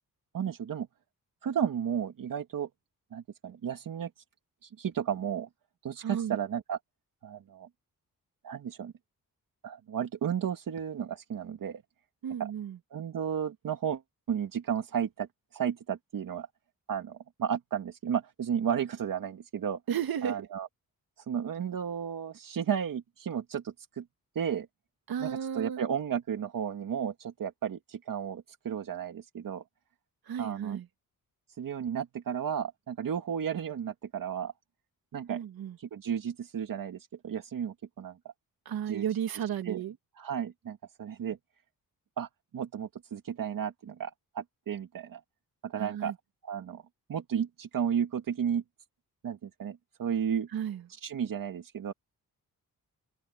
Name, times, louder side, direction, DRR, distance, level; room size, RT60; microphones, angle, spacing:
voice 1, 0.3-0.9 1.4-2.7 3.1-4.1 4.6-5.5 5.8-6.8 7.2-7.7 8.4-8.9 9.6-11.8 12.4-12.5 12.9-14.0 14.3-15.3 15.5-16.5 16.9-19.8 20.2-20.7 21.3-24.0 24.4-24.7 25.2-29.6 30.4-30.8 31.6-34.5 35.1-35.4 35.8-38.2 38.9-39.0 39.6-39.8 40.2-41.4 42.2-45.2 45.6-46.1 46.4-46.8 47.1-48.6 49.2-50.5 51.0-51.9, right 8 dB, 65° right, 2.1 m, -33 dB
voice 2, 6.0-6.4 12.2-12.8 19.9-20.5 25.1-25.8 30.3-30.9 35.3-35.8 38.7-39.9 45.8-46.1 50.5-50.8, right 9 dB, 85° right, 2.3 m, -33 dB
open air
cardioid pair, 110°, 35 cm